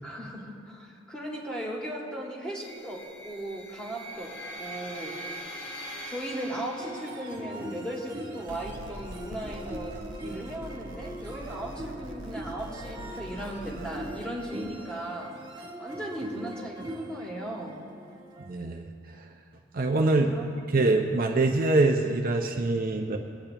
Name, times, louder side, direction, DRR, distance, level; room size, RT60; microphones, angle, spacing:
voice 1, 0.0-5.2 6.1-15.4 15.8-17.9 20.3-20.5, right 1 dB, 5° left, -4 dB, 2.1 m, -37 dB
sound 1, 2.6-7.6, equal, 70° left, 2.5 m, -42 dB
sound 2, 6.8-18.7, right 1 dB, 25° right, 1.6 m, -41 dB
sound 3, 8.5-14.1, equal, 85° right, 0.9 m, -43 dB
voice 2, 18.5-18.9 19.7-20.3 20.7-23.2, right 2 dB, 50° right, 3 dB, 0.7 m, -24 dB
22.0 x 8.8 x 2.9 m, 2.4 s
head